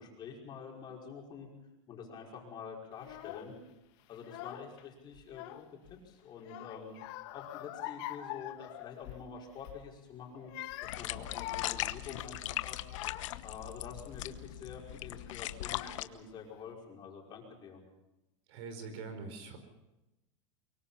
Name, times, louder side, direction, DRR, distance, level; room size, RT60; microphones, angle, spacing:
voice 1, 0.0-1.5 1.9-3.5 4.1-7.0 7.3-10.5 10.8-12.8 13.4-17.8, left 6 dB, 25° left, -1 dB, 5.3 m, -47 dB
Child speech kid speaking / Crying sobbing, 3.0-3.5 4.1-4.8 5.1-6.0 6.4-9.3 9.6-9.9 10.4-13.5 14.1-14.5 15.3-15.4 15.6-16.3, left 15 dB, 50° left, 1.5 m, -45 dB
sound 1, 10.8-16.0, left 15 dB, 75° left, 1.1 m, -39 dB
voice 2, 18.5-19.6, right 4 dB, 55° right, 9 dB, 4.8 m, -43 dB
24.0 x 23.0 x 5.7 m, 0.96 s
supercardioid pair, 160°, 16 cm